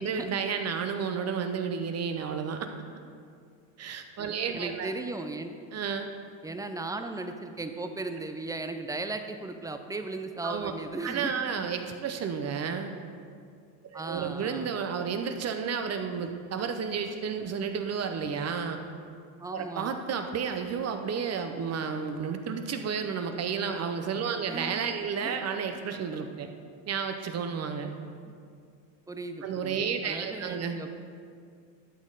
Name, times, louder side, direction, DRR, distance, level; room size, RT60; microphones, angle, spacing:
voice 1, 0.0-2.7 3.8-4.9 5.7-6.1 10.4-10.7 11.0-12.9 13.9-18.8 19.5-26.5 26.9-27.9 29.4-30.8, right 6 dB, 35° right, 6 dB, 0.8 m, -32 dB
voice 2, 4.5-5.5 6.4-11.7 13.9-14.7 19.4-20.0 24.5-24.7 25.2-25.4 28.2-28.3 29.1-29.8 30.0-30.9, right 2 dB, 10° right, 7 dB, 0.5 m, -36 dB
12.5 x 6.3 x 3.9 m, 2.2 s
supercardioid pair, 105°, 42 cm